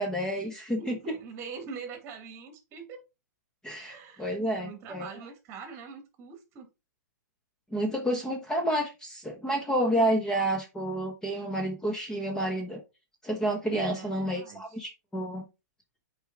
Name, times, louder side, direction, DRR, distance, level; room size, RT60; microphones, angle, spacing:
voice 1, 0.0-1.0 3.6-5.1 7.7-12.8 13.2-15.5, right 1 dB, 5° left, 1.1 m, -29 dB
voice 2, 0.7-3.0 3.8-6.7 13.7-14.6, right 6 dB, 30° right, 2.3 m, -43 dB
8.0 x 4.8 x 3.8 m
hypercardioid pair, 140°, 10 cm